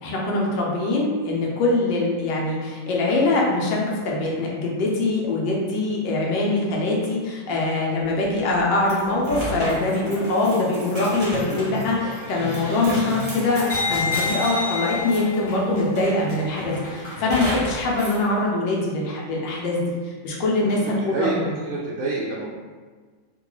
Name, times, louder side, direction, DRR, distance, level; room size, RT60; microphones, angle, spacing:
voice 1, 0.0-21.5, left 2 dB, 80° left, -2 dB, 1.4 m, -23 dB
sound 1, 8.8-15.5 15.9-16.5 17.3-18.2, equal, 30° right, 0.5 m, -34 dB
sound 2, 11.0-17.9, left 3 dB, 45° left, 0.9 m, -31 dB
voice 2, 20.8-22.5, right 3 dB, 75° right, -4 dB, 0.7 m, -28 dB
3.7 x 2.2 x 3.0 m, 1.5 s
omnidirectional pair, 2.0 m